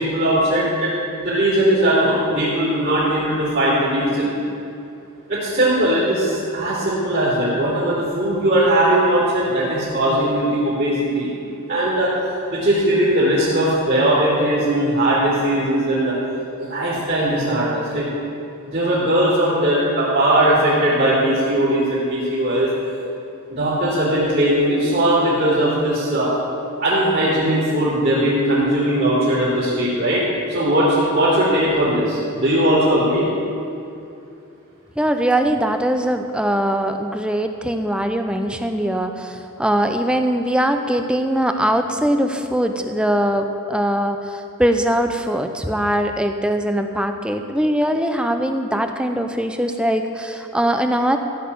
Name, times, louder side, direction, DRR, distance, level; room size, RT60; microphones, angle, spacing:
voice 1, 0.0-4.3 5.3-11.3 11.7-12.1 12.5-16.1 16.6-18.0 18.6-22.7 23.5-26.3 26.8-33.3, right 1 dB, 45° right, -10 dB, 3.5 m, -19 dB
voice 2, 35.0-51.2, equal, 5° right, 6 dB, 0.6 m, -21 dB
15.0 x 6.5 x 8.5 m, 2.6 s
head